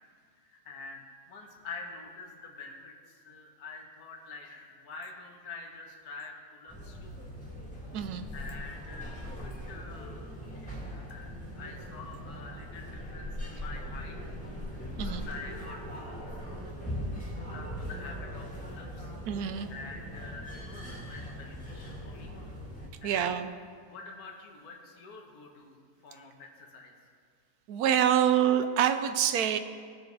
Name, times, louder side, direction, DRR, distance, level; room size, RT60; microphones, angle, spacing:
voice 1, 0.4-7.2 8.3-14.3 14.8-16.4 17.4-19.1 19.7-22.3 23.0-23.3 23.9-25.8 26.0-27.1, left 3 dB, 65° left, 0 dB, 1.7 m, -46 dB
sound 1, 6.7-22.9, equal, 5° left, 2.1 m, -40 dB
voice 2, 7.9-8.3 15.0-15.2 19.3-19.7 23.0-23.5 27.7-29.6, right 9 dB, 70° right, 10 dB, 1.1 m, -26 dB
17.5 x 6.8 x 4.0 m, 2.1 s
omnidirectional pair, 1.7 m